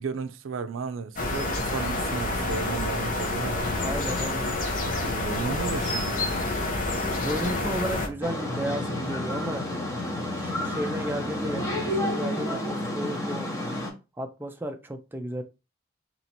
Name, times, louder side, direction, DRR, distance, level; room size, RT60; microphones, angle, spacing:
voice 1, 0.0-3.9 4.8-6.3, right 5 dB, 80° right, 0.4 m, -34 dB
sound 1, 1.2-8.1, left 2 dB, 40° left, 0.8 m, -28 dB
sound 2, 2.5-12.0, left 2 dB, 85° left, 0.9 m, -46 dB
voice 2, 3.8-4.5 7.0-9.6 10.3-13.5 14.2-15.4, right 1 dB, 10° right, 0.4 m, -33 dB
sound 3, 8.2-13.9, left 1 dB, 15° left, 0.9 m, -30 dB
3.0 x 2.7 x 4.3 m
head